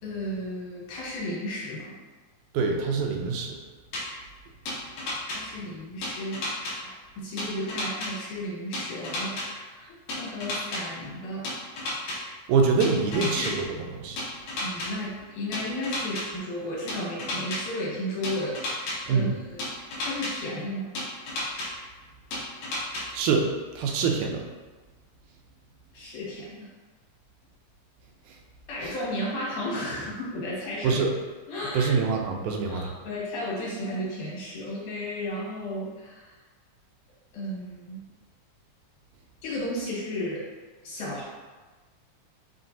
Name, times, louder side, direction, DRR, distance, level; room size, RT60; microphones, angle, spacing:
voice 1, 0.0-2.0 5.3-6.4 6.8-9.9 10.2-11.4 13.1-13.6 14.6-19.6 20.0-20.9 25.9-26.7 28.7-31.0 31.5-31.9 32.7-36.4 37.3-38.0 39.4-40.4 40.8-41.3, left 1 dB, 80° left, -6 dB, 2.8 m, -34 dB
voice 2, 2.5-3.6 12.5-14.2 19.1-19.4 23.1-23.5 23.8-24.4 28.8-28.9 30.8-31.1 31.7-32.9, right 5 dB, 85° right, 2 dB, 2.0 m, -25 dB
sound 1, 3.9-4.0 4.7-5.4 6.0-6.7 7.4-8.1 8.7-9.5 10.1-10.8 11.4-12.2 12.8-13.5 14.2-14.9 15.5-16.2 16.9-17.6 18.2-19.0 19.6-20.3 21.0-21.7 22.3-23.0, left 2 dB, 65° left, 1.8 m, -31 dB
5.8 x 2.9 x 2.6 m, 1.3 s
omnidirectional pair, 3.5 m